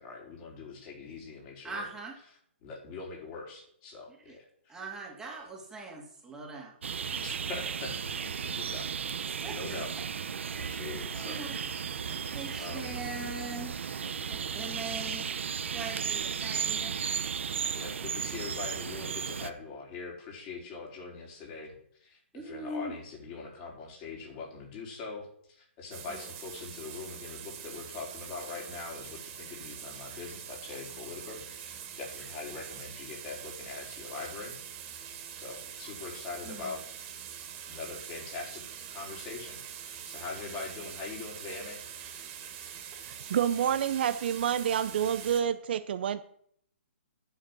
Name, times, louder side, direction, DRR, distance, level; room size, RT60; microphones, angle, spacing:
voice 1, 0.0-1.8 2.6-4.8 7.2-8.1 8.4-9.9 10.5-11.5 12.6-13.0 14.6-14.8 17.7-21.7 22.0-34.5 34.8-35.0 35.4-36.8 37.7-38.6 38.9-41.8, left 4 dB, 30° left, -2 dB, 4.3 m, -42 dB
voice 2, 1.6-2.2 4.3-4.4 4.7-6.7 9.4-9.8 11.1-11.6 12.3-13.7 14.3-15.3 15.6-16.9 22.3-22.9 26.1-26.2 36.4-36.8, right 2 dB, 10° right, -1 dB, 2.4 m, -41 dB
sound 1, 6.8-19.5, right 7 dB, 70° right, 1.0 m, -35 dB
sound 2, 25.9-45.4, right 9 dB, 30° right, 2.7 m, -44 dB
voice 3, 43.3-46.2, right 9 dB, 50° right, 12 dB, 0.7 m, -28 dB
10.5 x 7.2 x 6.2 m, 0.66 s
hypercardioid pair, 150°, 7 cm